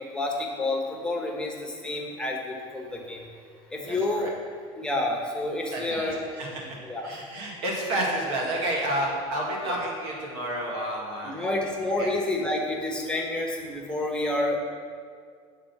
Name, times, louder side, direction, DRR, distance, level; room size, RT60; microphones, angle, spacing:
voice 1, 0.0-3.2 3.7-4.3 4.8-6.2 6.8-7.1 9.6-9.8 11.2-14.6, left 2 dB, 5° left, -1 dB, 1.1 m, -29 dB
voice 2, 3.9-4.3 5.7-6.8 7.0-12.1, right 1 dB, 85° right, -2 dB, 1.8 m, -31 dB
8.6 x 3.8 x 5.8 m, 2.1 s
supercardioid pair, 110°, 14 cm